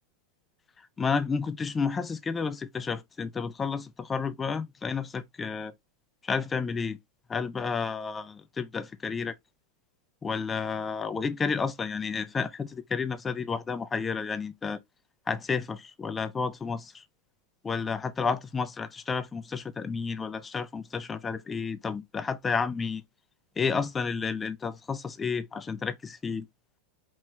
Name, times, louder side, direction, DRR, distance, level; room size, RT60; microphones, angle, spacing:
voice 1, 1.0-5.7 6.2-7.0 7.3-9.3 10.2-14.8 15.3-17.0 17.6-23.0 23.6-26.5, left 5 dB, 15° left, 0.5 m, -31 dB
4.8 x 3.0 x 2.2 m
figure-of-eight pair, 90°, 0 cm